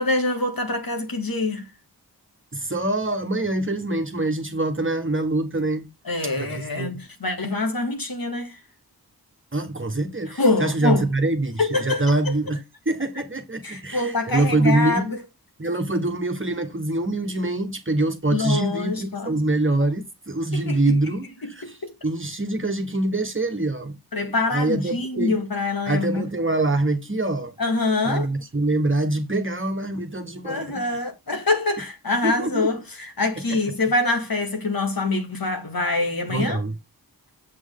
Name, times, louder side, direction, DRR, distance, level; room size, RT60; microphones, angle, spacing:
voice 1, 0.0-1.7 6.1-8.6 10.4-11.1 11.6-12.0 13.6-15.2 18.3-19.3 20.5-21.0 24.1-26.2 27.6-28.3 30.4-36.6, left 3 dB, 65° left, 2.1 m, -25 dB
voice 2, 2.5-5.9 6.4-7.0 9.5-12.6 12.8-15.1 15.6-21.8 22.0-24.0 24.5-25.4 25.9-27.5 28.0-31.0 32.2-32.7 33.5-33.6 36.3-36.7, right 2 dB, 30° right, 1.5 m, -24 dB
7.7 x 6.2 x 3.7 m
wide cardioid pair, 60°, 38 cm